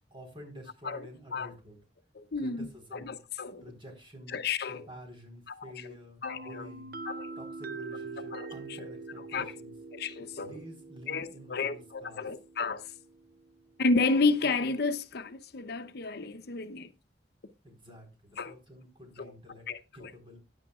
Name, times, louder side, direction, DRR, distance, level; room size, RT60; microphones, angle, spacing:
voice 1, 0.1-1.8 2.4-3.2 3.6-4.4 4.7-9.7 10.4-12.2 17.6-19.7 19.9-20.4, equal, 30° right, 4.3 m, -49 dB
voice 2, 2.1-3.6 4.3-4.9 5.5-5.6 6.2-6.7 7.1-7.3 8.3-8.5 8.8-8.9 9.3-9.5 9.9-10.6 11.1-12.8 13.8-16.9 18.4-18.6 19.2-19.3 19.7-20.1, left 3 dB, 60° left, 0.8 m, -31 dB
sound 1, 6.2-13.9, right 3 dB, 60° right, 0.8 m, -44 dB
16.0 x 9.8 x 2.4 m
head